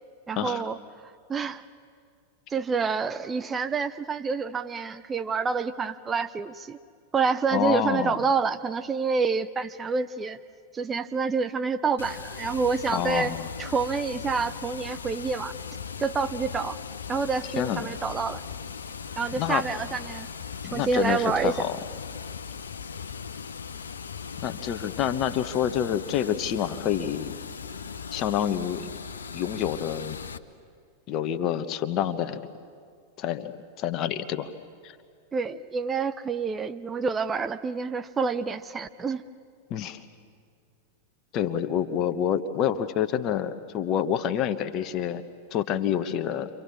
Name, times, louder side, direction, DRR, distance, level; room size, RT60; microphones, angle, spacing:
voice 1, 0.3-0.8 1.3-1.6 2.5-6.8 7.1-10.4 10.7-13.3 13.6-15.5 16.0-16.8 17.1-18.4 19.2-20.3 20.7-21.6 35.3-39.2, right 5 dB, 20° right, 11 dB, 0.7 m, -28 dB
voice 2, 7.5-8.1 12.9-13.5 17.6-17.9 19.4-19.6 20.6-21.8 24.4-27.3 28.1-28.9 29.3-30.2 31.1-32.5 33.2-33.5 33.8-34.5 34.8-35.0 39.7-40.0 41.3-45.2 45.5-46.5, left 9 dB, 35° left, 11 dB, 1.3 m, -27 dB
Water, 12.0-30.4, left 6 dB, 70° left, 0.8 m, -38 dB
29.5 x 25.0 x 7.3 m, 2.2 s
figure-of-eight pair, 90°, 0 cm